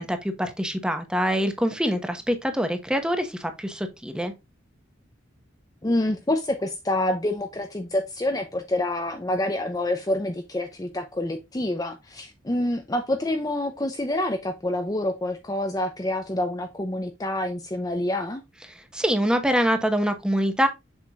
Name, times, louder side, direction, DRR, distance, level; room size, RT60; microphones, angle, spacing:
voice 1, 0.0-4.3 18.7-20.7, equal, 5° right, 1.1 m, -25 dB
voice 2, 5.8-18.4, left 1 dB, 20° left, 0.6 m, -27 dB
7.2 x 6.4 x 2.4 m
head